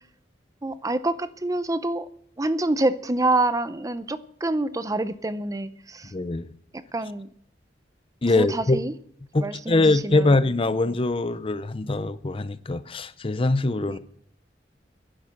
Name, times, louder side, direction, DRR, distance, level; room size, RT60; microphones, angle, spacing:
voice 1, 0.6-2.1 2.4-6.1 6.7-7.3 8.3-8.9 9.4-10.4 13.9-14.0, right 2 dB, 20° right, 0.6 m, -27 dB
voice 2, 6.1-6.5 8.2-8.8 9.3-14.0, left 2 dB, 30° left, 0.6 m, -23 dB
11.0 x 10.5 x 7.8 m
head